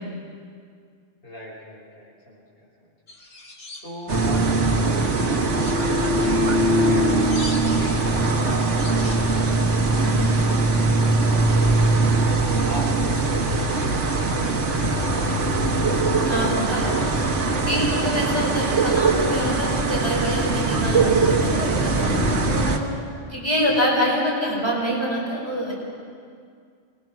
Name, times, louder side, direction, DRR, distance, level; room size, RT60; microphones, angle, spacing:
voice 1, 1.2-2.9 3.8-5.5 6.1-8.1 8.4-9.7 11.2-12.0 12.6-16.0 17.7-17.8 23.7-23.9, equal, 50° left, -4 dB, 6.0 m, -39 dB
sound 1, 3.1-4.9 5.2-10.9, left 1 dB, 80° left, 2.5 m, -42 dB
sound 2, 4.1-22.8, right 3 dB, 70° right, 1.8 m, -21 dB
voice 2, 10.0-10.3 16.3-22.9 23.2-25.7, equal, 20° right, -4 dB, 5.1 m, -26 dB
25.5 x 20.5 x 6.1 m, 2.2 s
omnidirectional pair, 1.3 m